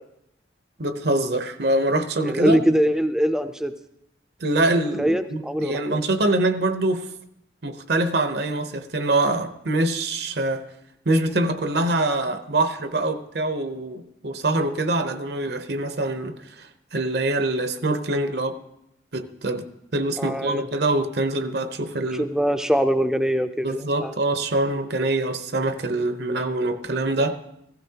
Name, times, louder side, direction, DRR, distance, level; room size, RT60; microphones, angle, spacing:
voice 1, 0.8-2.6 4.4-7.1 7.6-10.6 11.1-18.6 19.1-19.7 19.9-22.3 23.6-27.4, right 2 dB, 60° right, 9 dB, 0.8 m, -24 dB
voice 2, 2.2-3.7 5.0-6.0 20.2-20.7 22.2-24.1, equal, 5° right, 9 dB, 0.5 m, -23 dB
15.5 x 15.0 x 2.9 m, 0.80 s
head